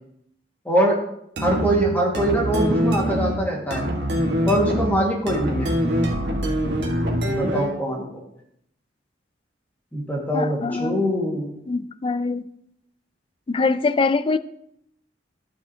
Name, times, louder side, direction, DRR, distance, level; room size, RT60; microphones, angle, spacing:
voice 1, 0.6-1.0 1.4-3.8 4.4-5.7 7.3-8.2 9.9-11.5, right 1 dB, 10° left, 1.7 m, -23 dB
sound 1, 1.4-7.8, equal, 65° right, 1.5 m, -24 dB
voice 2, 10.3-11.1 11.7-12.5 13.5-14.4, left 4 dB, 30° left, 0.3 m, -23 dB
11.5 x 7.6 x 2.8 m
head